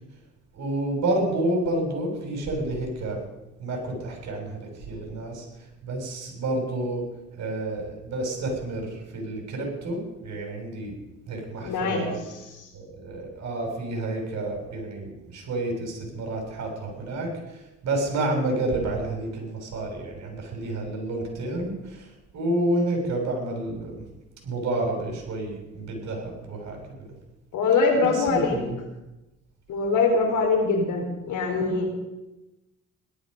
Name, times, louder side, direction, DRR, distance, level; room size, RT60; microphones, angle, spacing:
voice 1, 0.5-3.2 3.6-5.4 5.8-7.0 7.4-10.9 11.3-12.2 12.7-23.9 24.4-27.1 27.9-28.7, right 2 dB, 60° right, 1 dB, 6.7 m, -29 dB
voice 2, 11.6-12.7 27.5-28.6 29.7-31.9, left 4 dB, 80° left, 3 dB, 3.9 m, -23 dB
17.5 x 12.5 x 5.3 m, 1.0 s
cardioid pair, 90°, 30 cm